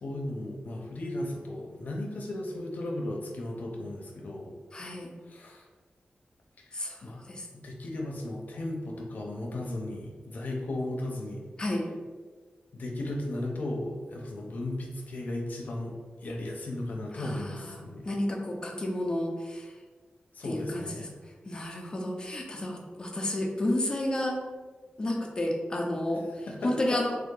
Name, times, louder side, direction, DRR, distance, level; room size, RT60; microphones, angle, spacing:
voice 1, 0.0-4.5 5.2-5.7 6.6-7.2 7.5-11.4 12.7-18.1 20.3-21.2 22.5-22.6 26.5-27.0, left 1 dB, 65° left, 0 dB, 0.7 m, -36 dB
voice 2, 4.7-5.1 6.7-7.5 11.6-11.9 17.1-19.7 20.4-21.1 21.4-24.4 25.0-27.2, left 1 dB, 25° left, 0 dB, 0.6 m, -31 dB
3.5 x 2.8 x 3.7 m, 1.4 s
wide cardioid pair, 165°, 3 cm